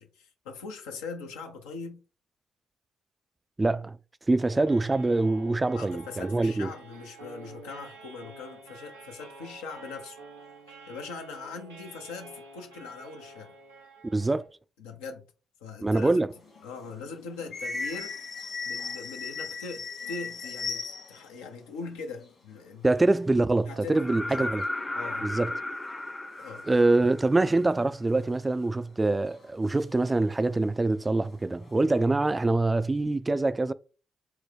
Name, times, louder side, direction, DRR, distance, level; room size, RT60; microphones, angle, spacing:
voice 1, 0.0-2.0 5.7-10.2 10.9-13.6 14.8-15.2 15.6-16.1 16.6-18.2 18.6-22.9 23.7-24.5 24.9-25.3 26.4-26.7, left 4 dB, 70° left, 0.5 m, -41 dB
voice 2, 3.6-4.0 4.3-6.7 14.1-14.4 15.8-16.3 22.8-24.6 25.2-25.5 26.7-33.7, right 2 dB, 20° right, 0.3 m, -24 dB
sound 1, 4.4-14.5, right 3 dB, 85° right, 0.8 m, -48 dB
sound 2, 16.3-21.3 21.6-21.7 21.9-23.3 23.8-23.9 24.1-24.6 25.4-25.5 26.1-27.0 27.5-27.6 28.7-28.8 29.3-30.7 31.0-32.0, left 4 dB, 50° left, 1.6 m, -38 dB
sound 3, 24.0-27.7 29.6-29.7, left 2 dB, 20° left, 0.6 m, -35 dB
4.3 x 2.0 x 3.4 m
figure-of-eight pair, 40°, 0 cm